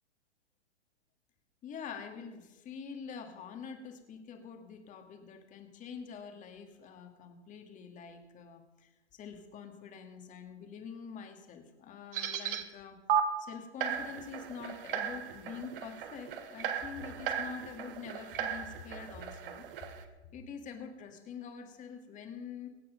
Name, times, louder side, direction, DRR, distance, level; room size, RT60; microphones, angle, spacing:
voice 1, 1.6-8.9 9.2-19.7 20.3-22.7, left 6 dB, 20° left, 5 dB, 2.1 m, -46 dB
sound 1, 12.1-12.6 13.1-13.2 13.8-20.0, right 9 dB, 50° right, 1.6 m, -36 dB
24.0 x 8.3 x 5.2 m, 1.1 s
figure-of-eight pair, 115°, 35 cm